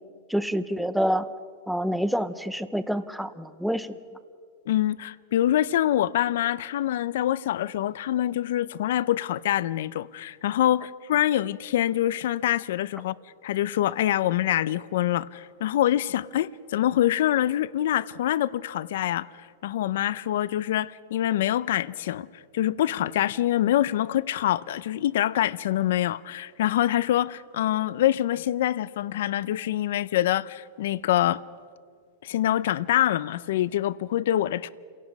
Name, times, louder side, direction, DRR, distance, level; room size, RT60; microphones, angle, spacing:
voice 1, 0.3-1.3 1.7-4.0, equal, ahead, 0.6 m, -27 dB
voice 2, 4.7-13.2 13.4-31.4 32.2-34.7, left 12 dB, 70° left, 0.5 m, -25 dB
29.0 x 17.0 x 5.3 m
supercardioid pair, 165°, 0 cm